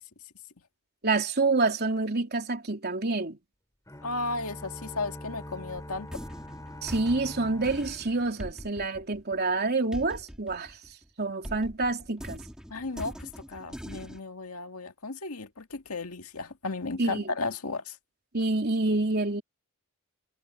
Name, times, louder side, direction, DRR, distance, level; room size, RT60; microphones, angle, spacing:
voice 1, 1.0-3.4 6.8-10.8 11.2-12.4 17.0-17.2 18.3-19.4, right 3 dB, 45° right, 3.3 m, -27 dB
sound 1, 3.9-8.8, left 1 dB, 15° left, 3.2 m, -44 dB
voice 2, 4.0-6.1 12.7-18.0, left 3 dB, 75° left, 2.0 m, -34 dB
sound 2, 5.7-11.1 11.4-14.2, equal, 5° right, 2.1 m, -42 dB
head